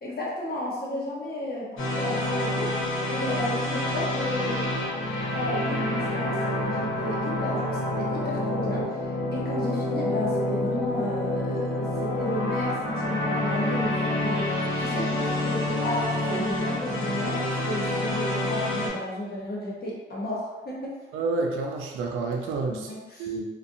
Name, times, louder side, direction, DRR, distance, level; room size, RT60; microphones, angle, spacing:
voice 1, 0.0-20.9 22.7-23.3, left 1 dB, 50° left, -5 dB, 1.0 m, -33 dB
sound 1, 1.8-18.9, left 1 dB, 75° left, 0.8 m, -28 dB
voice 2, 21.1-22.9 23.2-23.5, right 3 dB, 85° right, 1 dB, 0.4 m, -29 dB
2.5 x 2.2 x 2.6 m, 1.2 s
supercardioid pair, 55°, 20 cm